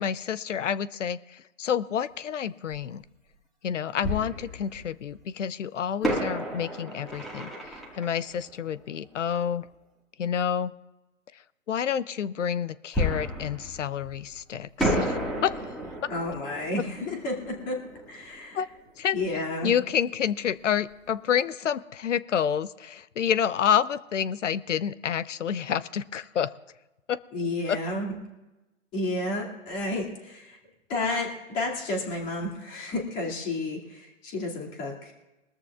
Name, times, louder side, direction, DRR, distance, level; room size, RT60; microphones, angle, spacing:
voice 1, 0.0-3.0 3.6-9.7 10.2-10.7 11.7-15.5 18.5-18.7 19.0-19.2 19.6-26.5 27.1-27.2 27.7-27.8, left 8 dB, 65° left, 17 dB, 0.7 m, -28 dB
Fireworks, 2.7-2.8 4.0-5.1 6.0-9.5 12.9-14.4 14.8-19.3 19.6-19.7 20.2-20.4, equal, ahead, 1.8 m, -32 dB
voice 2, 16.1-18.6 19.1-19.7 27.3-28.2 28.9-30.6 30.9-35.1, left 2 dB, 20° left, -1 dB, 2.4 m, -31 dB
22.0 x 13.5 x 2.4 m, 1.0 s
hypercardioid pair, 140°, 39 cm